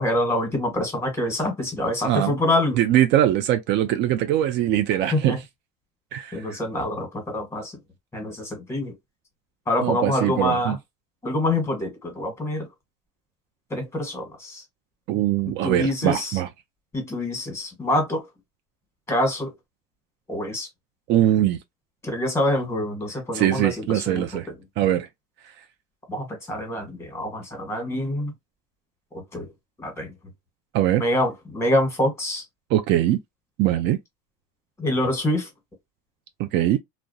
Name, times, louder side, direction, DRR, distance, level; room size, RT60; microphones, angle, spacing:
voice 1, 0.0-2.8 5.1-5.4 6.3-7.7 8.1-8.9 9.7-10.8 11.2-12.7 13.7-14.6 15.5-16.3 16.9-18.3 19.1-19.5 20.3-20.7 22.0-24.4 26.1-28.3 29.1-29.5 29.8-30.1 31.0-32.4 34.8-35.5, left 1 dB, 10° left, 1.3 m, -26 dB
voice 2, 2.7-5.4 6.1-6.6 9.8-10.8 15.1-16.5 21.1-21.6 23.3-24.5 24.8-25.1 30.7-31.0 32.7-33.2 33.6-34.0 36.4-36.8, right 12 dB, 55° right, 0.4 m, -22 dB
2.3 x 2.0 x 2.6 m
supercardioid pair, 100°, 21 cm